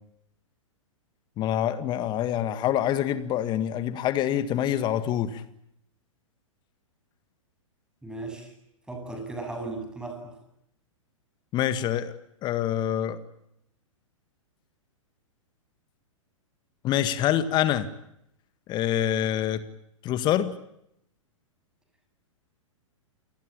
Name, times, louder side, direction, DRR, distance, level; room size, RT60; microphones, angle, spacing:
voice 1, 1.4-5.4 11.5-12.1 12.4-13.2 16.8-17.9 18.7-19.6 20.0-20.5, left 11 dB, 25° left, 13 dB, 1.8 m, -26 dB
voice 2, 8.0-8.5 8.9-10.3, right 2 dB, 5° right, 5 dB, 7.7 m, -36 dB
28.5 x 20.0 x 8.8 m, 0.77 s
figure-of-eight pair, 110°, 17 cm